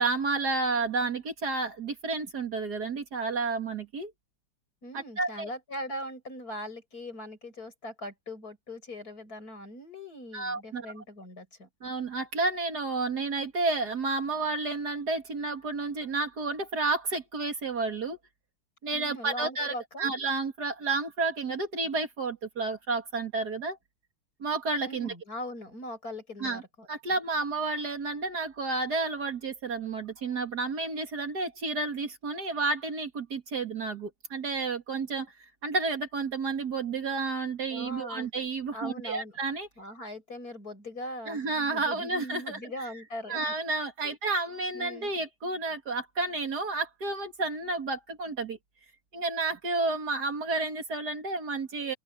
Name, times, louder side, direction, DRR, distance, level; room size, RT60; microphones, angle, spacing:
voice 1, 0.0-4.1 4.9-5.5 10.3-10.9 11.8-18.2 18.8-23.8 24.4-25.1 26.4-26.6 26.9-35.3 35.6-39.7 41.3-42.6 43.3-48.6 49.1-51.9, right 3 dB, 55° right, 2.7 m, -31 dB
voice 2, 4.8-11.7 18.9-20.1 24.9-26.9 37.7-38.3 38.7-39.4 39.8-43.5 44.0-44.1 44.7-45.1, left 1 dB, 50° left, 7.7 m, -40 dB
open air
omnidirectional pair, 2.1 m